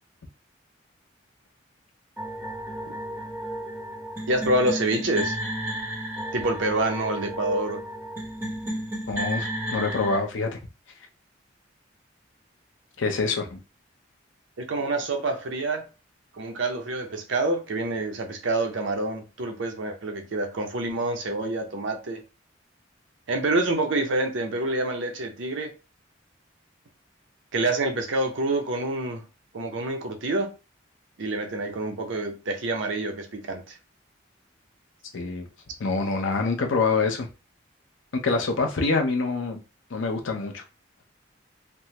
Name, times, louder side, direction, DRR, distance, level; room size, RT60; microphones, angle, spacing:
sound 1, 2.2-10.2, right 1 dB, 10° right, 0.8 m, -33 dB
voice 1, 4.3-5.4 6.3-7.8 14.6-15.9 16.4-22.2 23.3-25.7 27.5-29.2 29.5-30.5 31.2-33.7, right 2 dB, 75° right, 0.6 m, -27 dB
voice 2, 9.1-10.6 13.0-13.6 35.1-35.5 35.8-37.3 38.1-39.6 39.9-40.6, left 3 dB, 80° left, 0.6 m, -26 dB
3.4 x 2.0 x 2.8 m
head